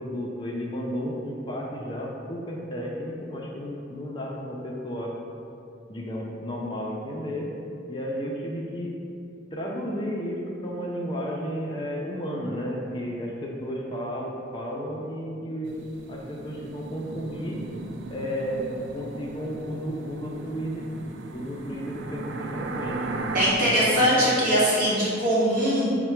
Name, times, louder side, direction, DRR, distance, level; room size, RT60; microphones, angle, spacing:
voice 1, 0.0-5.1 5.9-7.5 7.9-9.0 9.5-17.6 18.1-18.7 18.9-21.1 21.3-23.1 23.6-24.4, equal, 25° left, -2 dB, 0.4 m, -33 dB
sound 1, 15.6-23.5, right 3 dB, 80° right, 0.3 m, -37 dB
voice 2, 23.3-25.9, equal, 50° right, -8 dB, 1.4 m, -21 dB
5.6 x 2.1 x 4.4 m, 2.6 s
head